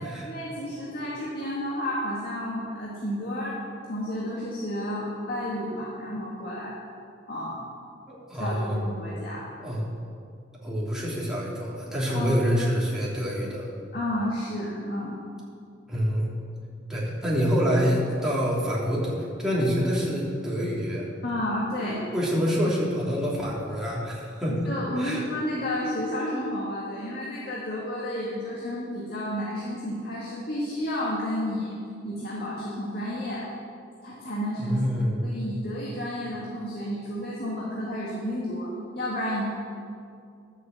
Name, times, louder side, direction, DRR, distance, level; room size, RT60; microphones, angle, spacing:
voice 1, 0.2-3.6 3.9-6.9 7.3-7.6 8.4-9.5 12.1-12.4 13.9-15.2 21.2-22.1 24.5-31.7 32.0-33.4 34.0-34.8 35.2-39.4, left 1 dB, 55° left, -5 dB, 1.9 m, -31 dB
voice 2, 8.1-8.8 9.6-9.8 10.6-13.7 15.9-16.3 16.9-21.1 22.1-24.7 25.0-25.2 34.6-35.2, equal, 5° right, -7 dB, 2.8 m, -26 dB
11.0 x 7.5 x 7.6 m, 2.3 s
head